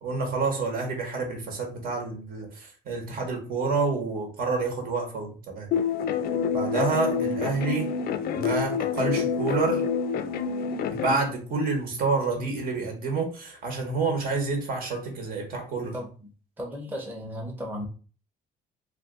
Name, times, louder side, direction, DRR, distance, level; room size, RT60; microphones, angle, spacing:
voice 1, 0.0-5.7 6.5-7.9 8.3-9.8 10.9-16.0, right 4 dB, 60° right, 2 dB, 1.2 m, -28 dB
sound 1, 5.7-11.2, left 6 dB, 65° left, 0.4 m, -27 dB
voice 2, 16.6-17.9, equal, 10° right, 0 dB, 0.8 m, -35 dB
2.5 x 2.4 x 3.7 m, 0.37 s
cardioid pair, 110°, 17 cm